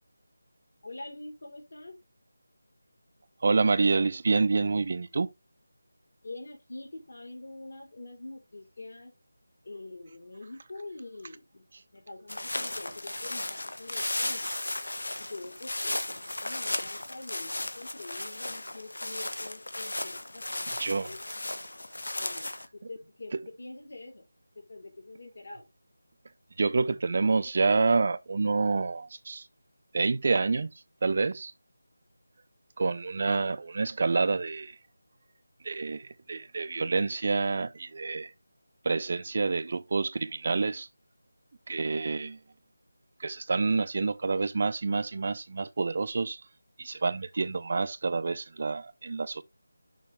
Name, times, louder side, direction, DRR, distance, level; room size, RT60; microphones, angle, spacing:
voice 1, 0.8-2.0 6.2-9.1 9.6-11.6 11.9-14.5 15.2-21.6 22.2-22.4 22.7-24.3 24.6-25.7, left 2 dB, 60° left, 3.5 m, -45 dB
voice 2, 3.4-5.3 20.8-21.1 26.6-29.5 29.9-30.7 31.0-31.5 32.8-34.8 35.6-38.3 38.8-40.9 41.7-42.4 43.2-46.4 46.8-49.4, right 4 dB, 35° right, 0.4 m, -28 dB
sound 1, 12.3-22.7, left 1 dB, 85° left, 1.3 m, -35 dB
7.1 x 5.3 x 3.3 m
figure-of-eight pair, 175°, 0 cm